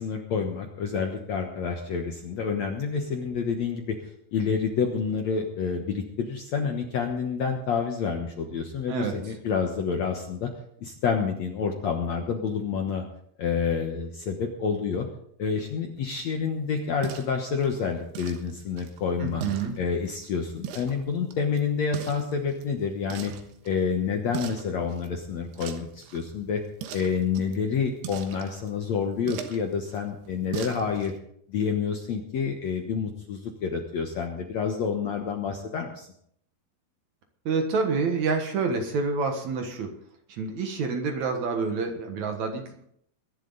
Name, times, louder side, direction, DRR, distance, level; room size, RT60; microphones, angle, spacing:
voice 1, 0.0-4.0 4.3-10.5 10.8-13.0 13.4-15.1 15.4-19.4 19.8-23.3 23.7-26.6 26.9-31.1 31.5-36.1, left 6 dB, 65° left, 3 dB, 1.8 m, -28 dB
sound 1, 16.0-31.2, right 8 dB, 80° right, 3.3 m, -42 dB
voice 2, 19.2-19.7 37.5-39.9 40.3-42.8, right 4 dB, 60° right, 4 dB, 2.2 m, -28 dB
22.0 x 11.0 x 4.0 m, 0.68 s
omnidirectional pair, 4.7 m